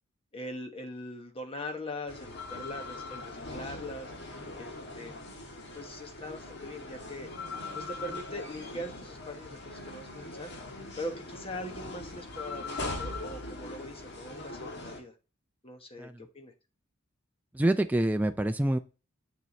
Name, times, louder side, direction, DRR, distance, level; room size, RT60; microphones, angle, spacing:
voice 1, 0.3-4.1 4.6-5.2 5.7-7.3 7.7-10.5 11.0-15.1 15.6-16.5, left 1 dB, 25° left, 1.1 m, -41 dB
sound 1, 2.1-15.0, left 2 dB, 55° left, 1.4 m, -41 dB
voice 2, 17.5-18.8, right 1 dB, 10° right, 0.3 m, -26 dB
7.5 x 6.8 x 3.2 m
head